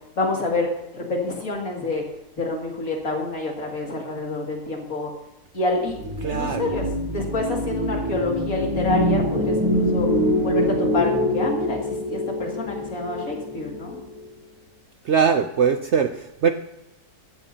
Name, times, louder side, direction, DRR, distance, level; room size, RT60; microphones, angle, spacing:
voice 1, 0.2-2.0 2.4-5.1 5.5-10.1 10.4-14.0, left 2 dB, 60° left, 0 dB, 2.7 m, -28 dB
sound 1, 5.9-14.2, left 1 dB, 20° right, 1.7 m, -25 dB
voice 2, 6.2-6.7 15.0-16.5, right 6 dB, 60° right, 8 dB, 0.7 m, -21 dB
16.0 x 14.0 x 2.8 m, 0.95 s
omnidirectional pair, 1.7 m